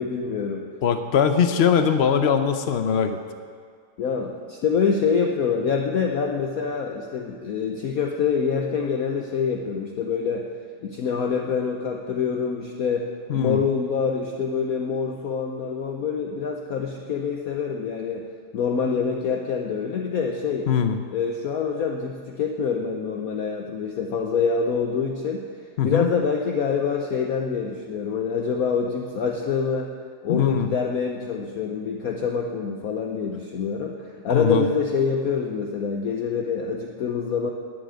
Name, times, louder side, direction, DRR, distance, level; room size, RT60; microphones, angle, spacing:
voice 1, 0.0-0.7 4.0-10.5 10.8-18.3 18.5-20.7 21.1-25.5 25.8-29.9 30.2-37.5, left 6 dB, 60° left, 2 dB, 1.1 m, -26 dB
voice 2, 0.8-3.2 13.3-13.6 20.7-21.0 25.8-26.1 30.3-30.7 34.3-34.6, left 7 dB, 85° left, 8 dB, 0.5 m, -21 dB
11.5 x 7.7 x 9.3 m, 2.1 s
omnidirectional pair, 2.1 m